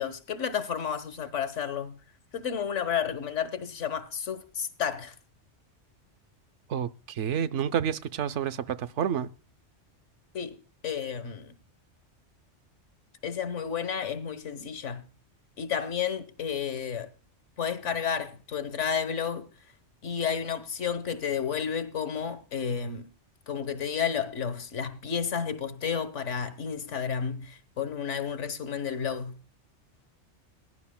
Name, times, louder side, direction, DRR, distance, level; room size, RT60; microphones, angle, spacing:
voice 1, 0.0-2.0 2.3-5.1 10.3-10.6 10.8-11.5 13.2-15.0 15.6-17.1 17.6-19.5 20.0-23.0 23.5-29.4, left 7 dB, 75° left, 1.5 m, -31 dB
voice 2, 6.7-9.3, right 8 dB, 75° right, 1.0 m, -29 dB
20.5 x 11.0 x 2.2 m
omnidirectional pair, 1.2 m